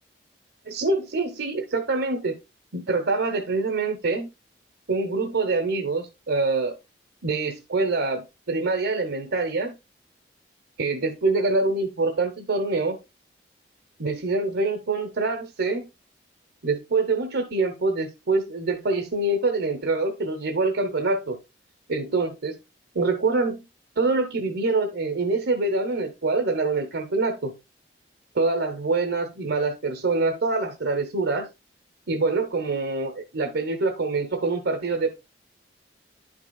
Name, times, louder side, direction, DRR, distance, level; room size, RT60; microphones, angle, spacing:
voice 1, 0.7-2.4 2.7-4.3 4.9-6.8 7.2-9.8 10.8-13.0 14.0-15.9 16.6-21.4 21.9-22.6 22.9-23.6 24.0-27.5 28.3-31.5 32.1-35.1, right 3 dB, 75° right, 1.0 m, -25 dB
10.0 x 5.9 x 2.3 m
head